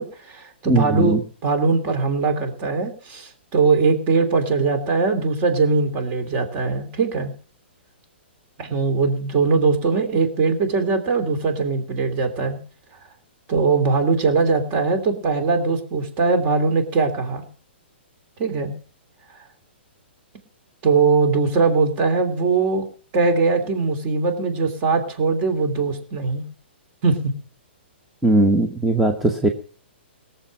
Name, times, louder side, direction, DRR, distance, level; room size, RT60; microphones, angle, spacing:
voice 1, 0.0-7.3 8.6-12.6 13.5-17.4 18.4-18.7 20.8-22.8 23.1-26.4 27.0-27.3, right 4 dB, 30° right, 7 dB, 3.0 m, -21 dB
voice 2, 0.7-1.2 28.2-29.5, right 2 dB, ahead, 3 dB, 1.0 m, -19 dB
18.0 x 7.3 x 7.5 m, 0.43 s
hypercardioid pair, 150°, 6 cm